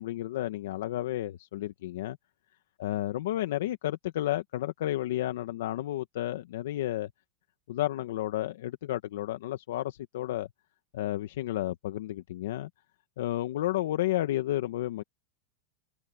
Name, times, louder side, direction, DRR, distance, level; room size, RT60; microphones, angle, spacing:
voice 1, 0.0-2.2 2.8-7.1 7.7-10.5 10.9-12.7 13.2-15.0, left 14 dB, 75° left, 1.3 m, -32 dB
supercardioid pair, 140°, 0 cm